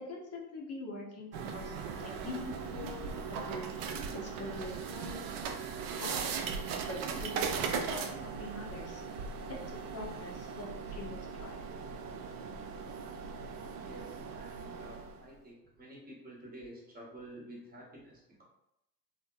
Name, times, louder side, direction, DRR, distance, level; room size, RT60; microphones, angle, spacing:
voice 1, 0.0-3.9 4.2-5.2 5.9-6.3 6.8-9.0 9.5-9.6 9.9-11.6, left 1 dB, 35° left, -2 dB, 0.8 m, -44 dB
sound 1, 1.3-15.3, right 5 dB, 50° right, 0.4 m, -39 dB
voice 2, 13.7-18.4, right 1 dB, 20° right, -3 dB, 1.0 m, -50 dB
2.8 x 2.1 x 2.4 m, 0.81 s
hypercardioid pair, 80°, 45 cm